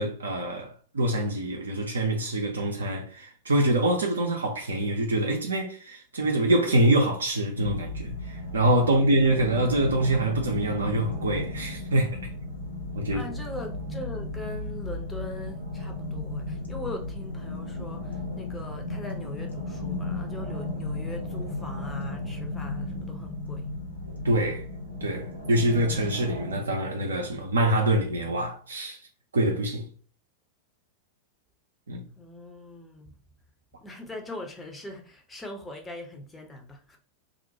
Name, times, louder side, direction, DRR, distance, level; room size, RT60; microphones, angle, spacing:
voice 1, 0.0-12.3 12.9-13.3 24.2-24.7 25.0-29.0 29.3-29.9 31.9-32.1, right 1 dB, 70° right, 0.4 m, -25 dB
sound 1, 7.5-26.6, left 2 dB, 85° left, 0.7 m, -35 dB
voice 2, 13.1-23.7 32.2-33.1 33.8-37.0, left 1 dB, 10° left, 0.6 m, -41 dB
2.4 x 2.1 x 2.7 m
figure-of-eight pair, 90°, 0 cm